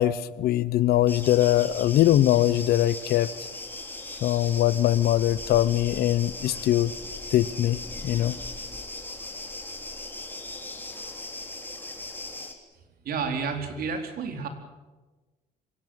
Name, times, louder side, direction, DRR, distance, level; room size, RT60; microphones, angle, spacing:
voice 1, 0.0-3.3 4.2-6.9 7.3-8.4, left 13 dB, 70° left, 19 dB, 0.9 m, -22 dB
sound 1, 1.1-12.5, left 2 dB, 10° left, 3.7 m, -38 dB
voice 2, 13.0-14.5, right 5 dB, 60° right, 6 dB, 4.1 m, -30 dB
26.0 x 17.5 x 9.0 m, 1.2 s
cardioid pair, 110°, 17 cm